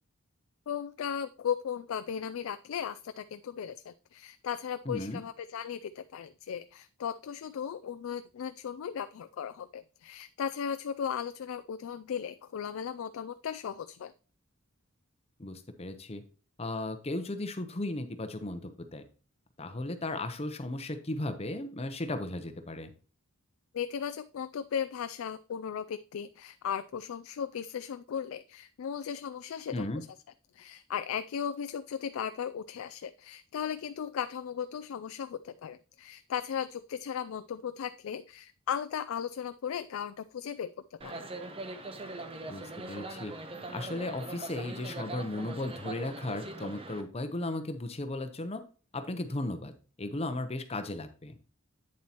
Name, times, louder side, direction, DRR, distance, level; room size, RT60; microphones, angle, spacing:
voice 1, 0.7-14.1 23.7-29.8 30.5-41.3, left 8 dB, 70° left, 12 dB, 0.3 m, -36 dB
voice 2, 4.9-5.2 15.4-16.2 16.6-19.0 19.6-22.9 29.7-30.0 42.5-43.3 43.7-48.6 48.9-49.7 50.0-51.4, left 2 dB, 30° left, 9 dB, 0.8 m, -36 dB
sound 1, 41.0-47.0, right 2 dB, 25° right, 0.9 m, -41 dB
8.6 x 7.3 x 2.9 m, 0.36 s
head